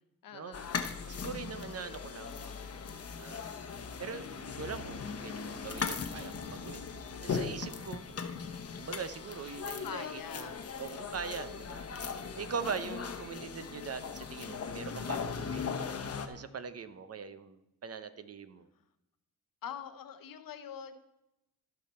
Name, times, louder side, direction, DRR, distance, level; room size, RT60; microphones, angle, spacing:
voice 1, 0.2-0.9 9.6-10.7 19.6-21.0, left 8 dB, 75° left, 10 dB, 0.9 m, -44 dB
sound 1, 0.5-16.3, left 6 dB, 45° left, 1.0 m, -39 dB
voice 2, 1.0-2.6 3.2-3.7 4.0-6.9 7.2-8.0 8.8-11.9 12.4-15.8 16.3-18.7, right 6 dB, 45° right, 12 dB, 0.8 m, -42 dB
14.5 x 5.9 x 4.3 m, 0.88 s
cardioid pair, 90°, 34 cm